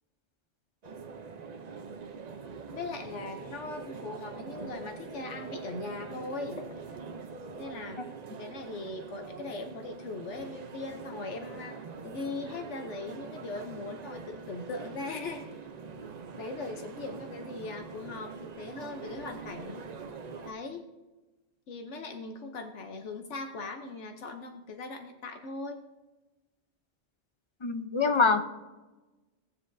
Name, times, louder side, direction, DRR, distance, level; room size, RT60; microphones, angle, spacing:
sound 1, 0.8-20.5, right 5 dB, 45° right, 0.6 m, -43 dB
voice 1, 2.7-6.7 7.6-8.0 8.4-11.8 12.0-15.5 16.4-19.8 20.4-20.8 21.7-25.8, left 3 dB, 80° left, 5 dB, 1.1 m, -39 dB
voice 2, 27.6-28.4, left 4 dB, 30° left, 8 dB, 0.6 m, -24 dB
17.5 x 7.1 x 2.6 m, 1.1 s
omnidirectional pair, 1.2 m